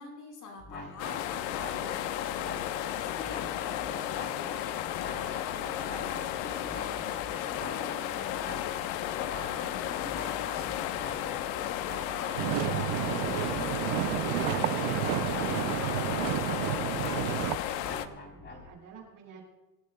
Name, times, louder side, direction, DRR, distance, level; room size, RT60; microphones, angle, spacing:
voice 1, 0.0-16.2, left 3 dB, 35° left, 1 dB, 4.3 m, -47 dB
sound 1, 0.6-18.7, left 3 dB, 20° left, 3.6 m, -44 dB
sound 2, 1.0-18.1, left 12 dB, 85° left, 1.0 m, -34 dB
sound 3, 12.4-17.6, right 18 dB, 65° right, 0.5 m, -31 dB
voice 2, 17.1-19.4, right 6 dB, 40° right, -3 dB, 6.5 m, -50 dB
25.5 x 16.0 x 2.2 m, 1.1 s
cardioid pair, 150°, 50 cm